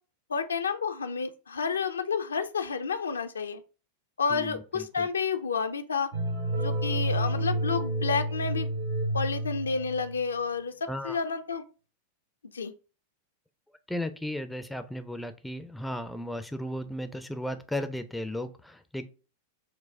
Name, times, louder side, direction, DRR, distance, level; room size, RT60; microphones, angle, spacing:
voice 1, 0.3-3.6 4.2-6.1 6.6-8.7 9.1-10.7 11.0-11.6 12.5-12.7, left 5 dB, 70° left, 0.4 m, -30 dB
voice 2, 4.3-5.1 10.9-11.2 13.9-19.0, left 1 dB, 5° left, 0.4 m, -35 dB
sound 1, 6.1-10.2, right 1 dB, 65° right, 1.1 m, -30 dB
4.5 x 2.1 x 3.4 m
figure-of-eight pair, 90°, 0 cm